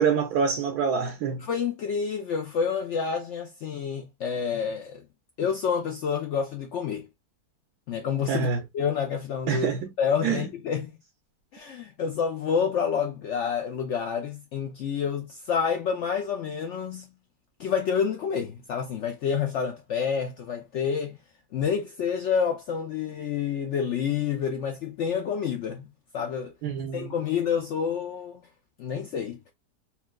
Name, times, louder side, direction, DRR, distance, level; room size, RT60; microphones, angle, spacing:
voice 1, 0.0-1.5 8.3-8.6 9.5-9.9 10.2-10.4 26.6-27.1, right 6 dB, 75° right, 1.0 m, -26 dB
voice 2, 1.4-5.0 5.4-7.1 7.9-9.7 10.0-10.9 11.5-17.1 17.6-21.2 21.5-26.5 26.9-28.4 28.8-29.4, left 7 dB, 85° left, 0.6 m, -28 dB
4.4 x 2.2 x 2.3 m
omnidirectional pair, 1.8 m